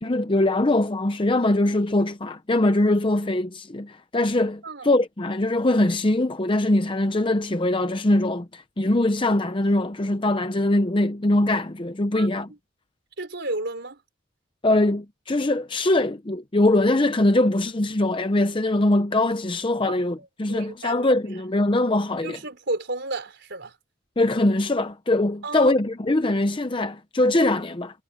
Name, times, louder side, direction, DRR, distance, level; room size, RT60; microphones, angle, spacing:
voice 1, 0.0-12.5 14.6-22.4 24.2-28.0, left 1 dB, 25° left, 0.7 m, -22 dB
voice 2, 13.2-14.0 19.9-21.1 22.2-23.7 25.4-25.7, right 2 dB, 55° right, 5.0 m, -32 dB
head